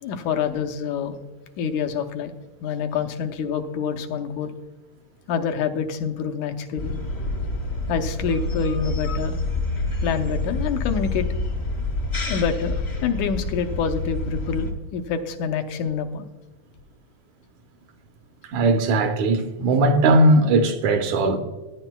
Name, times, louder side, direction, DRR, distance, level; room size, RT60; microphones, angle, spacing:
voice 1, 0.0-1.2 1.6-2.3 2.6-4.5 5.3-6.9 7.9-9.4 10.0-11.3 12.3-16.3, left 6 dB, 85° left, 2.1 m, -27 dB
sound 1, 6.8-14.7, left 2 dB, 45° left, 0.8 m, -27 dB
voice 2, 18.5-21.4, right 2 dB, 75° right, 2.2 m, -18 dB
16.0 x 9.8 x 2.3 m
omnidirectional pair, 3.3 m